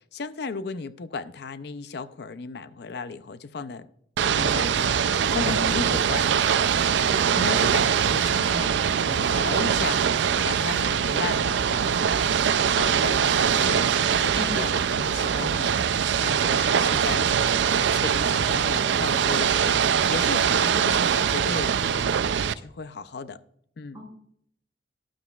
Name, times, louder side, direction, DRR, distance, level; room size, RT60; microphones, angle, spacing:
voice 1, 0.0-3.9 4.3-6.4 7.3-15.9 16.2-17.3 17.7-22.1 22.6-23.4 23.8-24.0, left 4 dB, 60° left, 0.5 m, -35 dB
Ocean / Boat Water vehicle, 4.2-22.5, right 7 dB, 75° right, 0.4 m, -23 dB
voice 2, 5.3-5.6 6.9-7.3 14.3-14.7 23.9-24.0, left 1 dB, 20° right, 4.9 m, -33 dB
12.5 x 11.5 x 2.3 m
head